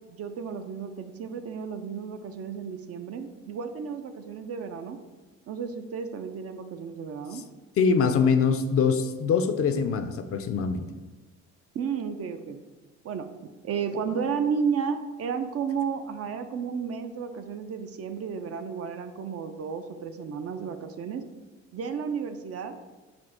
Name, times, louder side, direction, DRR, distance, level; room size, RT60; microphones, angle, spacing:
voice 1, 0.1-5.0 5.5-7.4 11.7-12.6 13.0-21.2 21.7-22.8, right 6 dB, 50° right, 8 dB, 0.4 m, -32 dB
voice 2, 7.8-10.8, left 5 dB, 50° left, 8 dB, 0.4 m, -23 dB
4.3 x 2.5 x 4.3 m, 1.2 s
cardioid pair, 90°, 30 cm